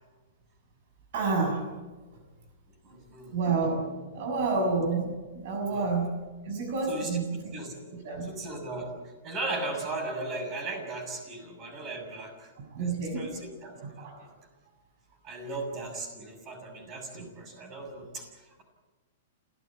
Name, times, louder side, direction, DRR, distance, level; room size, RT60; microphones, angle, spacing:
voice 1, 1.1-1.6 3.3-6.1 6.5-7.3 8.0-8.3 12.7-13.3 14.0-14.1 17.1-17.2, right 4 dB, 55° right, 3 dB, 6.3 m, -29 dB
voice 2, 2.8-3.4 5.6-5.9 6.9-7.8 8.2-12.5 12.8-14.3 15.2-18.6, right 2 dB, 25° right, 5 dB, 6.5 m, -37 dB
28.0 x 15.0 x 8.6 m, 1.3 s
hypercardioid pair, 160°, 0 cm